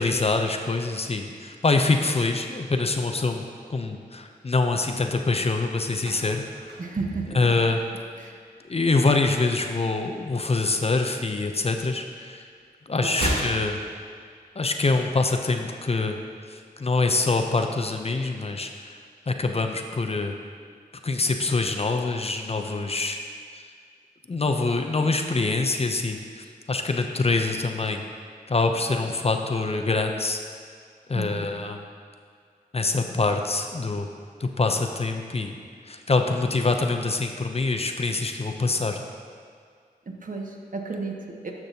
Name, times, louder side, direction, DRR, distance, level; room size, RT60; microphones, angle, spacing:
voice 1, 0.0-6.7 7.3-7.8 8.7-12.5 12.9-13.8 14.5-16.2 16.5-18.9 19.3-20.3 21.0-23.2 23.5-23.7 24.3-28.0 28.5-30.4 31.1-31.8 32.7-34.1 34.4-35.5 35.8-39.0, left 3 dB, 40° left, 5 dB, 0.6 m, -25 dB
sound 1, 5.9-8.3 8.6-8.9 9.2-10.6 10.9-12.3 12.5-14.6 14.9-15.0, right 1 dB, 80° right, 1.5 m, -35 dB
voice 2, 6.8-7.4 8.2-8.4 13.0-13.3 31.1-31.5 40.2-41.5, right 3 dB, 55° right, 1 dB, 1.1 m, -33 dB
12.0 x 6.0 x 2.8 m, 2.1 s
cardioid pair, 45°, 17 cm